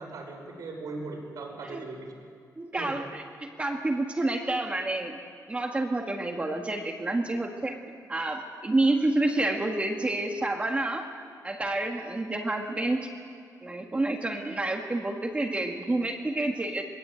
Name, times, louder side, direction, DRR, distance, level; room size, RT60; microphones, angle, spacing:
voice 1, 0.0-2.0 2.7-2.9, right 3 dB, 70° right, 2 dB, 5.9 m, -38 dB
voice 2, 2.6-5.2 5.5-7.8 8.1-11.1 11.4-13.1 13.6-16.8, right 2 dB, 20° right, 2 dB, 1.7 m, -29 dB
22.5 x 20.5 x 9.0 m, 2.2 s
wide cardioid pair, 155°, 6 cm